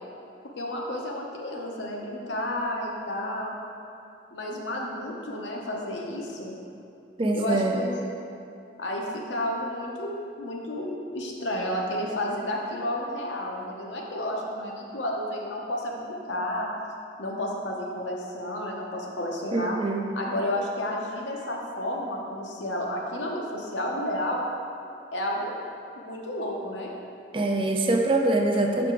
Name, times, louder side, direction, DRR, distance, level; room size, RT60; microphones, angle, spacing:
voice 1, 0.6-3.5 4.3-6.6 7.3-8.0 8.8-16.7 17.2-19.8 20.2-24.4 25.1-25.5 26.0-26.9, left 1 dB, 75° left, -1 dB, 0.8 m, -31 dB
voice 2, 7.2-7.8 19.5-20.0 27.3-28.9, right 2 dB, 30° right, 2 dB, 0.4 m, -24 dB
5.6 x 4.8 x 3.8 m, 2.6 s
head